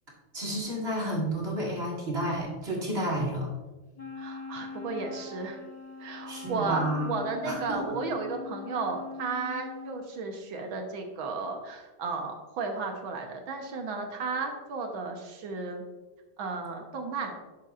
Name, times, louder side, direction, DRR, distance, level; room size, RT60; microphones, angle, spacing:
voice 1, 0.3-3.5 6.3-7.1 7.4-8.0, right 1 dB, 30° right, -3 dB, 2.0 m, -31 dB
Wind instrument woodwind instrument, 4.0-10.1, left 5 dB, 25° left, 0.9 m, -42 dB
voice 2, 4.2-5.6 6.0-15.8 16.4-17.3, right 4 dB, 65° right, 3 dB, 1.8 m, -34 dB
11.5 x 6.9 x 2.5 m, 1.2 s
omnidirectional pair, 2.4 m